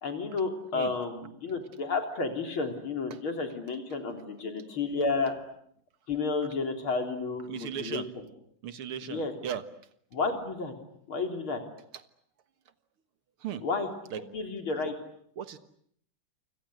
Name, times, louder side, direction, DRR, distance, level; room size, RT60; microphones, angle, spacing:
voice 1, 0.0-5.3 6.1-8.2 9.0-9.3 10.1-10.7 11.1-11.6 13.6-13.9 14.2-14.9, left 4 dB, 75° left, 5 dB, 4.4 m, -31 dB
voice 2, 7.5-8.1 8.6-9.6 13.4-13.6 14.1-14.2 14.8-14.9 15.4-15.6, right 8 dB, 90° right, 12 dB, 2.4 m, -36 dB
28.5 x 25.5 x 7.9 m, 0.66 s
omnidirectional pair, 2.3 m